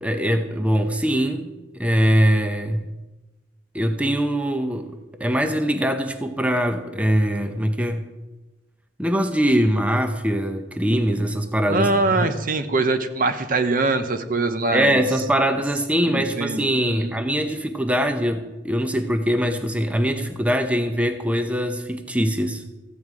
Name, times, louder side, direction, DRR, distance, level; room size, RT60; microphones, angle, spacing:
voice 1, 0.0-2.8 3.7-8.0 9.0-11.9 12.2-12.3 14.7-22.6, equal, 5° right, 7 dB, 0.7 m, -22 dB
voice 2, 11.7-15.0 16.1-17.2, right 3 dB, 50° right, 9 dB, 0.8 m, -23 dB
14.5 x 9.3 x 4.8 m, 1.1 s
head